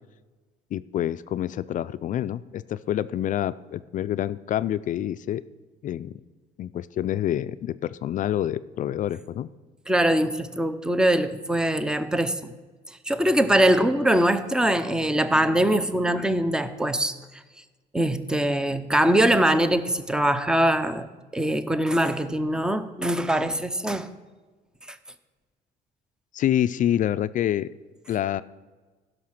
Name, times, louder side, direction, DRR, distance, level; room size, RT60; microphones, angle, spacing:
voice 1, 0.7-5.4 5.8-6.1 6.6-9.5 26.3-27.7 28.1-28.4, left 11 dB, 50° left, 14 dB, 0.4 m, -27 dB
voice 2, 9.9-12.5 13.1-17.1 17.9-21.1 21.3-24.1 24.9-25.0, right 1 dB, 5° right, 12 dB, 0.7 m, -22 dB
15.5 x 6.4 x 5.9 m, 1.3 s
cardioid pair, 110°, 17 cm